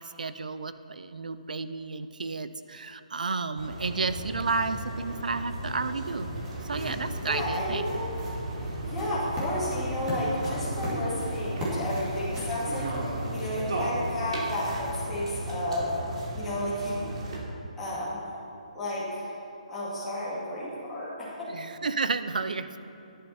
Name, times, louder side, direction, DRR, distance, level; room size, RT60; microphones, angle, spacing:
voice 1, 0.2-6.3 6.7-7.8 21.5-22.8, right 4 dB, 90° right, 11 dB, 0.7 m, -31 dB
sound 1, 3.6-17.4, right 1 dB, 50° right, 3.3 m, -35 dB
sound 2, 5.6-13.8, equal, 10° right, 2.4 m, -39 dB
voice 2, 7.2-8.1 8.8-15.9 16.3-17.1 17.8-18.3 18.7-19.3 19.7-21.5, left 1 dB, 5° left, -12 dB, 2.5 m, -32 dB
14.5 x 11.0 x 4.4 m, 2.7 s
hypercardioid pair, 175°, 4 cm